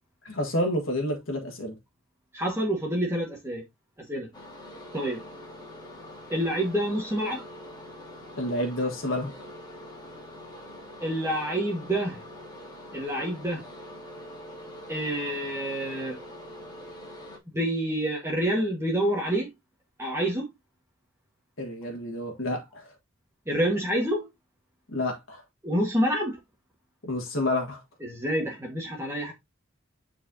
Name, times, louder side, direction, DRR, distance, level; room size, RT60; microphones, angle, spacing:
voice 1, 0.2-1.7 8.4-9.3 21.6-22.9 24.9-25.4 27.0-27.8, left 1 dB, 70° left, 1.6 m, -29 dB
voice 2, 2.3-3.6 4.1-4.3 4.9-5.2 6.3-7.4 11.0-12.2 12.9-13.7 14.9-16.2 17.5-19.5 20.0-20.5 23.5-24.3 25.6-26.4 28.0-29.3, equal, 10° right, 1.6 m, -27 dB
sound 1, 4.3-17.4, left 1 dB, 20° left, 2.7 m, -44 dB
9.8 x 4.5 x 2.8 m
head